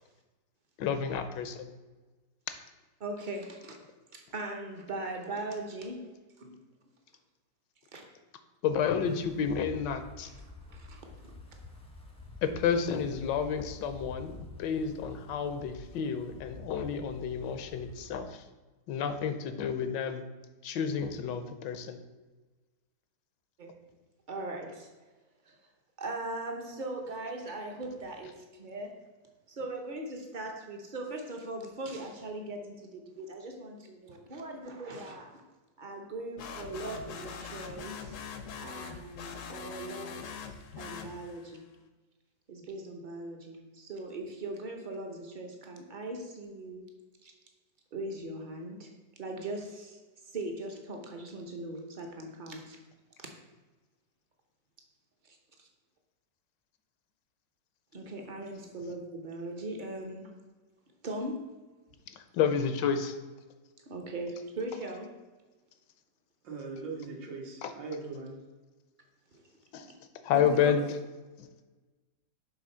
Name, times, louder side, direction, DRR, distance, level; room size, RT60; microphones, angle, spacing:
voice 1, 0.8-1.7 8.6-10.3 12.4-18.4 18.9-20.2 20.6-22.0 62.1-63.2 67.6-67.7 69.7-69.9 70.2-70.8 71.4-71.5, left 7 dB, 85° left, 9 dB, 1.3 m, -30 dB
voice 2, 3.0-3.8 4.1-6.1 6.4-6.6 7.9-8.1 10.2-10.3 10.7-11.3 23.6-23.7 24.3-25.1 25.5-25.6 26.0-28.9 29.5-35.4 35.8-38.2 38.6-40.3 40.8-41.7 42.5-46.8 47.2-47.3 47.9-48.9 49.2-52.8 53.2-53.3 55.2-55.7 57.9-60.3 61.0-61.4 63.9-65.1 69.3-69.4 70.3-70.7, right 2 dB, 55° right, 2 dB, 0.5 m, -40 dB
Wind, 9.0-18.2, left 2 dB, 5° left, 0.4 m, -49 dB
sound 1, 36.4-41.6, left 6 dB, 70° left, 0.7 m, -43 dB
voice 3, 66.4-68.4, right 4 dB, 85° right, -1 dB, 2.0 m, -40 dB
6.1 x 3.9 x 5.5 m, 1.2 s
omnidirectional pair, 1.9 m